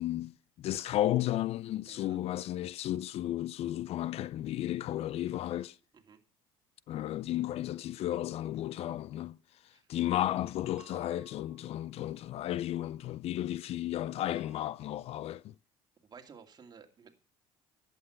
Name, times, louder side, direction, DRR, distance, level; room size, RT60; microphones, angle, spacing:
voice 1, 0.0-5.8 6.9-9.4 9.9-15.5, left 13 dB, 55° left, 0.5 m, -33 dB
voice 2, 1.9-2.2 5.9-6.2 9.7-9.9 16.0-17.1, right 6 dB, 35° right, 2.6 m, -54 dB
sound 1, 7.8-8.3 10.8-12.4 14.3-15.5, right 5 dB, 10° right, 4.1 m, -61 dB
11.5 x 8.4 x 5.8 m
supercardioid pair, 80°, 12 cm